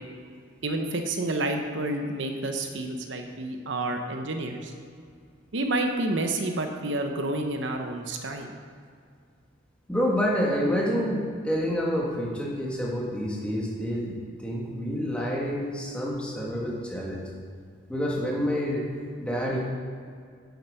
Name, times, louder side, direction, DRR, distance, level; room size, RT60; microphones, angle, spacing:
voice 1, 0.6-4.7 5.5-8.5, right 2 dB, 65° right, 5 dB, 0.8 m, -29 dB
voice 2, 9.9-14.1 14.4-17.2 17.9-18.9 19.2-19.6, equal, 5° left, -4 dB, 1.7 m, -28 dB
8.8 x 8.1 x 5.4 m, 2.1 s
head